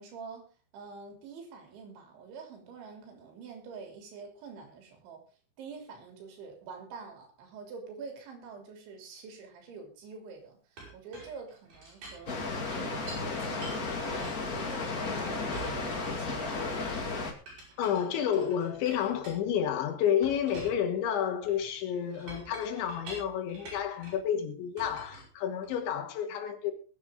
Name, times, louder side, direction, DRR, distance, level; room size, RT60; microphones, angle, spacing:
voice 1, 0.0-5.2 5.6-16.5, right 5 dB, 80° right, 5.5 m, -46 dB
Chink clink, 10.8-13.3 13.6-15.1 15.5-16.7 17.5-19.8 20.2-24.3 24.8-25.9, right 3 dB, 55° right, 8.6 m, -48 dB
Water, 12.3-17.3, left 3 dB, 45° left, 1.1 m, -34 dB
voice 2, 17.8-26.7, left 9 dB, 80° left, 4.1 m, -30 dB
22.0 x 9.6 x 3.7 m
omnidirectional pair, 5.2 m